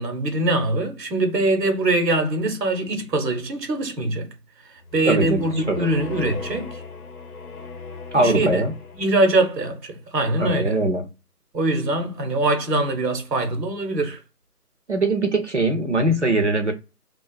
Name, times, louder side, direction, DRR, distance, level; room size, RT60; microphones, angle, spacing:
voice 1, 0.0-4.3 4.7-6.8 8.1-8.7 8.9-10.8 11.5-14.2, right 2 dB, 80° right, 1.0 m, -23 dB
sound 1, 4.8-9.4, left 4 dB, 65° left, 0.7 m, -37 dB
voice 2, 5.0-5.9 8.1-8.7 10.4-11.0 14.9-16.7, right 2 dB, 45° right, 0.6 m, -21 dB
2.5 x 2.3 x 2.2 m
figure-of-eight pair, 175°, 48 cm